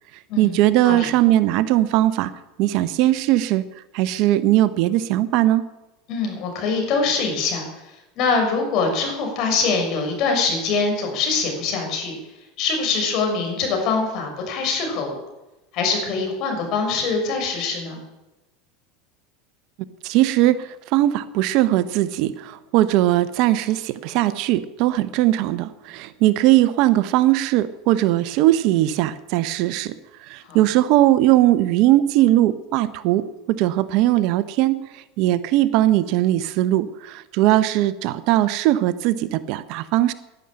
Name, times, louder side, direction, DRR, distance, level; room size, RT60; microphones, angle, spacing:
voice 1, 0.4-2.3 2.6-3.6 3.9-5.6 20.0-30.0 30.2-40.1, right 14 dB, 60° right, 14 dB, 0.9 m, -19 dB
voice 2, 6.1-7.6 8.2-12.1 12.6-15.2 15.7-18.0 30.5-30.6, left 4 dB, 55° left, 2 dB, 6.4 m, -23 dB
11.5 x 11.0 x 8.8 m, 1.0 s
supercardioid pair, 110°, 0 cm